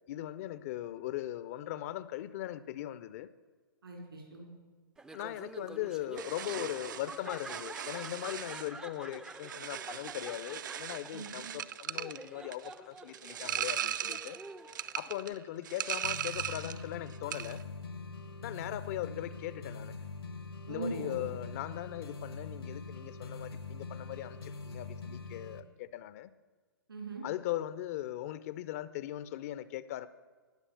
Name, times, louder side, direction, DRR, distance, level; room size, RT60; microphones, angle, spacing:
voice 1, 0.1-3.3 5.1-14.4 15.0-17.6 18.4-19.9 20.7-26.3 27.2-30.1, left 14 dB, 40° left, 16 dB, 0.6 m, -39 dB
voice 2, 3.8-4.5 11.1-11.5 20.7-21.3 26.9-27.2, right 3 dB, 75° right, 2 dB, 4.6 m, -40 dB
Laughter, 5.0-15.3, right 2 dB, 5° right, 0.5 m, -49 dB
sound 1, 6.2-16.9 17.1-17.6, right 9 dB, 55° right, 0.6 m, -39 dB
sound 2, 16.0-25.6, left 4 dB, 80° left, 1.2 m, -43 dB
19.0 x 7.0 x 7.0 m, 1.5 s
figure-of-eight pair, 120°, 12 cm